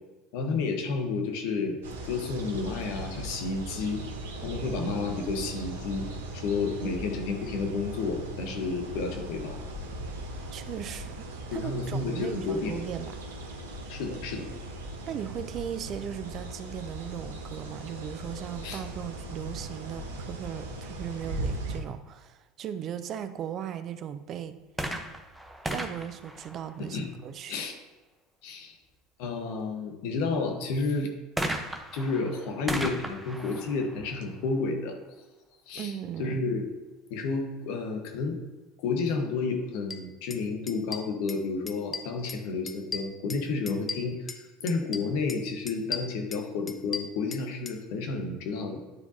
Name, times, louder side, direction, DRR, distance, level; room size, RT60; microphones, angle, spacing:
voice 1, 0.3-1.8 2.1-4.0 4.4-6.1 6.3-9.6 11.5-12.7 13.9-14.5 18.6-18.8 26.8-27.1 27.5-27.8 28.4-28.7 29.2-31.1 31.9-35.0 35.7-35.9 36.2-36.6 37.1-38.4 38.8-48.8, left 4 dB, 65° left, 3 dB, 1.2 m, -31 dB
sound 1, 1.8-21.8, right 1 dB, 75° right, 1.0 m, -38 dB
voice 2, 10.5-13.2 15.1-24.6 25.7-27.6 35.8-36.4, right 9 dB, 45° right, 11 dB, 0.5 m, -37 dB
sound 2, 24.7-27.3 31.4-35.0 35.8-35.9, right 1 dB, 5° right, 0.9 m, -36 dB
sound 3, 39.9-40.0 40.3-40.4 40.7-41.4 41.7-42.4 42.7-44.4 44.7-45.4 45.7-47.8, left 5 dB, 25° left, 0.7 m, -37 dB
9.7 x 4.6 x 2.8 m, 1.2 s
hypercardioid pair, 75°, 0 cm